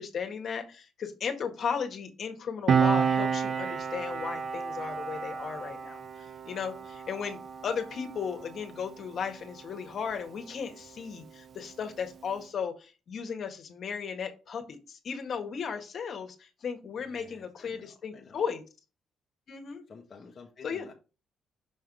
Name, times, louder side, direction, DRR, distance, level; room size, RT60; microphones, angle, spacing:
voice 1, 0.0-18.6 19.5-19.8 20.6-20.9, left 6 dB, 60° left, 1.6 m, -36 dB
Piano, 2.7-9.7 10.0-10.2, right 6 dB, 50° right, 0.5 m, -30 dB
voice 2, 17.0-18.5 19.9-20.9, left 5 dB, 40° left, 1.2 m, -51 dB
6.3 x 3.7 x 4.8 m
cardioid pair, 90°, 0 cm